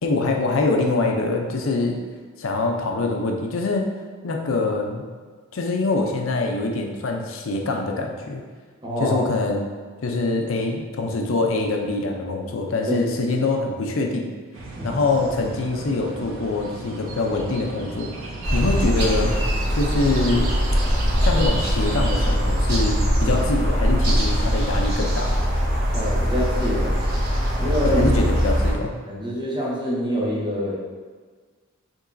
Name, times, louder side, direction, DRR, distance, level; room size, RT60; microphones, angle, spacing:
voice 1, 0.0-2.0 2.4-3.9 4.2-5.0 5.5-8.4 9.0-9.7 10.0-14.3 14.8-19.4 19.7-20.5 21.2-25.4 27.8-28.9, left 3 dB, 75° left, 2 dB, 0.5 m, -24 dB
voice 2, 8.8-9.3 12.9-13.1 14.8-15.0 23.2-23.4 25.9-27.0 27.6-28.0 29.1-30.7, equal, 25° right, -5 dB, 0.9 m, -25 dB
sound 1, 14.5-22.4, right 2 dB, 80° right, 0.7 m, -34 dB
sound 2, 18.4-28.7, equal, 50° right, 1.2 m, -21 dB
5.2 x 3.8 x 2.6 m, 1.5 s
head